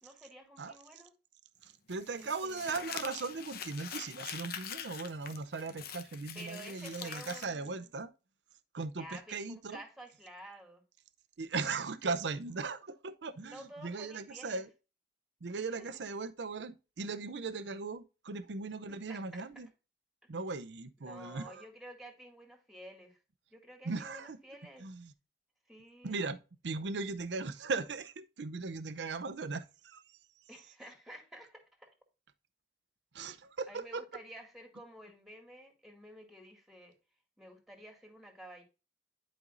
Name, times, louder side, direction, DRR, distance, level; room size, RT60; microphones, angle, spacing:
voice 1, 0.0-1.1 2.2-3.0 6.3-7.9 8.9-10.8 13.4-14.6 18.9-19.5 21.0-23.2 23.5-24.9 25.7-26.2 30.5-31.9 33.7-36.9 37.4-38.6, equal, ahead, 2.2 m, -51 dB
voice 2, 1.6-8.1 8.7-9.8 11.4-14.7 15.4-19.7 20.3-21.6 23.8-24.4 24.8-25.1 26.0-30.2 33.1-34.0, right 4 dB, 75° right, 0.6 m, -38 dB
Crumpling crinkling, 1.9-7.4, left 8 dB, 60° left, 0.9 m, -44 dB
11.0 x 5.2 x 2.6 m
head